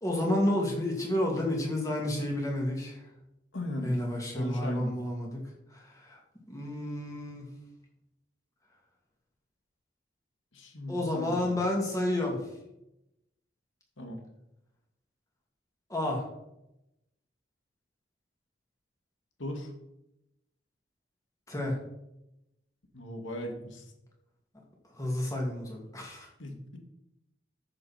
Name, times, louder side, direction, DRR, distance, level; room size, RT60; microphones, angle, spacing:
voice 1, 0.0-3.0 3.8-5.4 5.7-6.2 6.5-7.5 10.9-12.4 15.9-16.2 21.5-21.8 24.9-26.3, left 1 dB, 15° left, -1 dB, 2.5 m, -30 dB
voice 2, 3.5-3.9 4.2-4.9 10.5-11.6 14.0-14.2 19.4-19.7 22.9-23.9 26.4-26.8, left 1 dB, 85° left, 3 dB, 2.1 m, -38 dB
13.5 x 6.8 x 4.4 m, 0.87 s
head